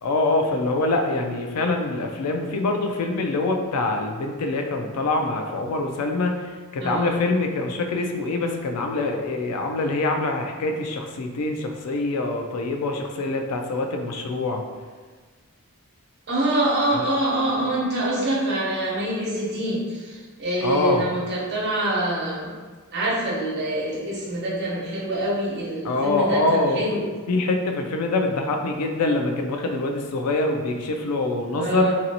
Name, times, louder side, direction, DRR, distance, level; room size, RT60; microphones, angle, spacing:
voice 1, 0.0-14.6 16.9-17.0 20.6-21.1 25.8-26.8 27.3-31.9, left 2 dB, 85° left, 4 dB, 0.4 m, -24 dB
voice 2, 6.8-7.2 16.3-22.5 22.9-27.1 31.5-31.9, right 1 dB, 50° right, -6 dB, 0.9 m, -25 dB
3.0 x 2.6 x 2.8 m, 1.5 s
head